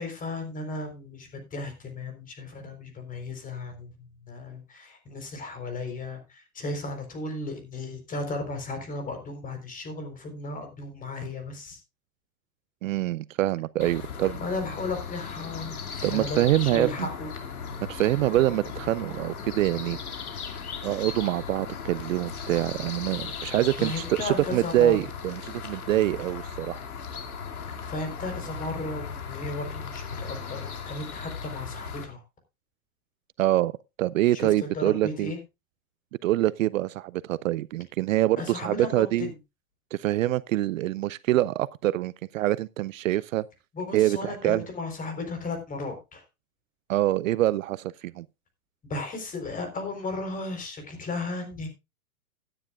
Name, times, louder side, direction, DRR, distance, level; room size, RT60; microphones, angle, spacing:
voice 1, 0.0-11.8 14.4-15.8 16.1-17.3 18.1-18.3 23.8-25.0 27.9-32.2 34.3-35.4 38.4-39.4 43.7-46.2 48.9-51.7, left 2 dB, 20° left, 4.1 m, -35 dB
voice 2, 12.8-14.4 16.0-17.1 17.9-20.0 20.8-26.8 33.4-33.7 34.0-35.3 36.2-39.3 39.9-43.5 43.9-44.6 46.9-48.3, right 15 dB, 65° right, 0.5 m, -25 dB
sound 1, 13.8-32.0, left 6 dB, 90° left, 2.6 m, -37 dB
16.5 x 10.0 x 2.4 m
hypercardioid pair, 125°, 43 cm